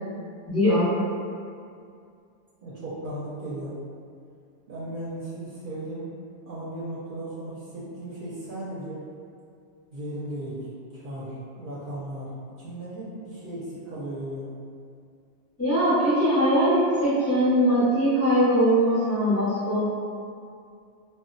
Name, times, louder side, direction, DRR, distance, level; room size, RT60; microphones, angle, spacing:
voice 1, 0.5-0.9 15.6-19.8, equal, 15° left, -11 dB, 0.5 m, -21 dB
voice 2, 2.6-3.7 4.7-6.1 6.5-9.0 9.9-10.7 10.9-12.3 12.6-14.4, right 1 dB, 60° right, -8 dB, 0.6 m, -36 dB
2.1 x 2.1 x 3.8 m, 2.4 s
omnidirectional pair, 1.2 m